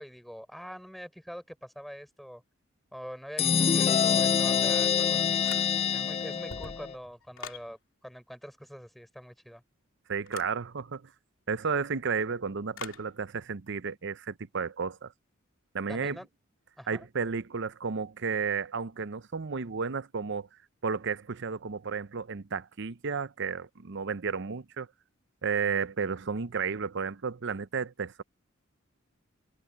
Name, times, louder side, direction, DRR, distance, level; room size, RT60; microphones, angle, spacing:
voice 1, 0.0-2.4 2.9-5.5 5.9-9.6 15.9-16.3 16.8-17.1, equal, ahead, 5.0 m, -44 dB
sound 1, 3.4-6.9, left 7 dB, 30° left, 0.3 m, -25 dB
sound 2, 5.4-6.0 6.4-7.7 10.3-10.6 12.7-13.1, left 5 dB, 75° left, 2.7 m, -43 dB
voice 2, 10.1-11.1 11.5-15.1 15.7-16.2 16.9-20.5 20.8-24.9 25.4-28.2, right 5 dB, 60° right, 0.7 m, -32 dB
head